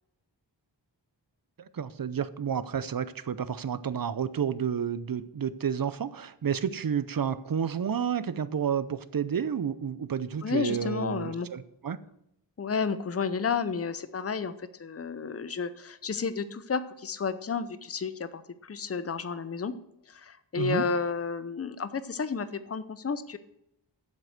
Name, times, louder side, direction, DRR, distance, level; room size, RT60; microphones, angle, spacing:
voice 1, 1.7-12.0 20.6-20.8, right 7 dB, 50° right, 15 dB, 0.6 m, -30 dB
voice 2, 10.4-11.5 12.6-19.7 20.1-23.4, left 5 dB, 35° left, 13 dB, 0.6 m, -31 dB
7.7 x 7.5 x 6.4 m, 0.80 s
wide cardioid pair, 60°, 44 cm